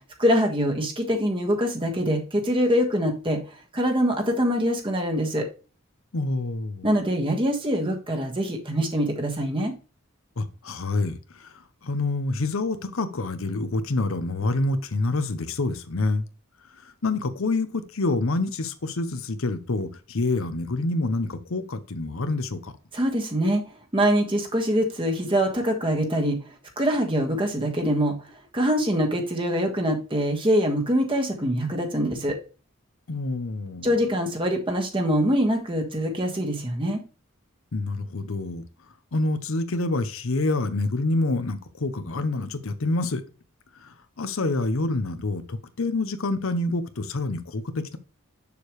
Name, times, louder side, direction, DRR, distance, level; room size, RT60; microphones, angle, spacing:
voice 1, 0.2-3.4 3.7-5.5 6.8-9.7 22.9-23.6 23.9-26.4 26.8-28.1 28.5-32.4 33.8-37.0, equal, 25° right, 1.5 m, -24 dB
voice 2, 6.1-6.9 10.4-16.3 16.8-22.7 33.1-33.9 37.7-38.6 39.1-43.2 43.7-48.0, left 2 dB, 70° left, 0.8 m, -27 dB
7.0 x 6.7 x 3.1 m
head